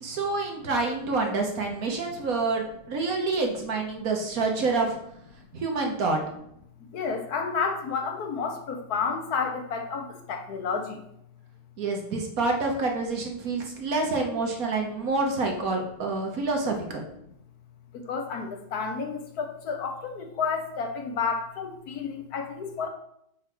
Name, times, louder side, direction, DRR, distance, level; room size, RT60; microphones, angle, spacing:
voice 1, 0.0-5.0 5.5-6.2 11.8-17.0, right 3 dB, 55° right, 2 dB, 1.4 m, -27 dB
voice 2, 6.9-11.0 18.1-22.9, left 5 dB, 65° left, 4 dB, 1.2 m, -31 dB
4.7 x 4.6 x 5.9 m, 0.74 s
omnidirectional pair, 1.9 m